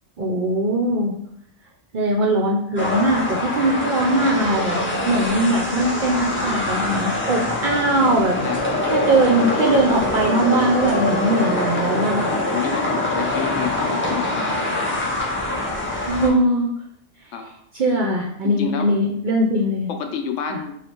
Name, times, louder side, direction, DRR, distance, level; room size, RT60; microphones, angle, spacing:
voice 1, 0.2-1.2 1.9-8.4 8.9-12.3 15.9-16.7 17.7-19.9, right 1 dB, 60° right, -2 dB, 0.5 m, -20 dB
sound 1, 2.8-16.3, left 1 dB, 20° left, 0.4 m, -24 dB
voice 2, 8.4-8.8 12.2-15.1 17.3-17.5 18.4-18.9 19.9-20.8, left 7 dB, 75° left, 5 dB, 0.9 m, -30 dB
3.2 x 2.5 x 4.3 m, 0.71 s
omnidirectional pair, 1.3 m